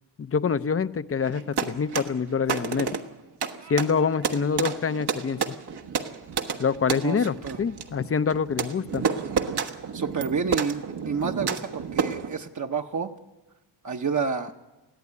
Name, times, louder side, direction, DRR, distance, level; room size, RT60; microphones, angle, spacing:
voice 1, 0.2-2.9 3.7-5.4 6.6-9.0, left 6 dB, 35° left, 14 dB, 0.7 m, -26 dB
sound 1, 1.2-12.4, right 6 dB, 65° right, 1.3 m, -31 dB
voice 2, 7.0-7.6 9.9-13.1 13.8-14.5, right 5 dB, 45° right, 4 dB, 1.1 m, -29 dB
21.0 x 14.0 x 9.6 m, 1.1 s
cardioid pair, 85°, 42 cm